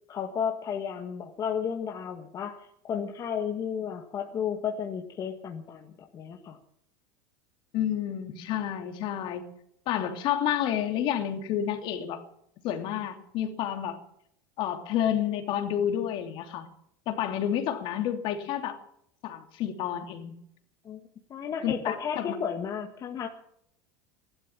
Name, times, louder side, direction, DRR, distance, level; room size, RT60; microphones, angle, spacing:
voice 1, 0.1-6.6 20.8-21.0 21.3-23.3, left 7 dB, 35° left, 3 dB, 1.8 m, -33 dB
voice 2, 7.7-9.5 9.9-12.2 12.6-14.0 14.6-16.7 17.1-18.8 19.2-20.3 21.6-22.3, left 10 dB, 55° left, 6 dB, 2.9 m, -30 dB
15.5 x 12.5 x 7.4 m, 0.73 s
supercardioid pair, 115°, 10 cm